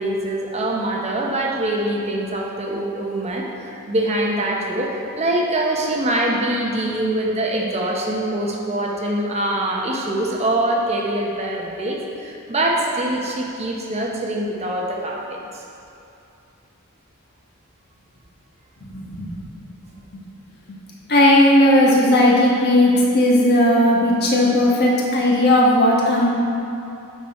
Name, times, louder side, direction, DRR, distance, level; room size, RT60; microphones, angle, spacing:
voice 1, 0.0-15.6, right 1 dB, 30° right, -1 dB, 0.8 m, -24 dB
voice 2, 18.9-19.4 21.1-26.3, left 1 dB, 50° left, -4 dB, 1.4 m, -16 dB
8.6 x 6.1 x 4.2 m, 2.7 s
head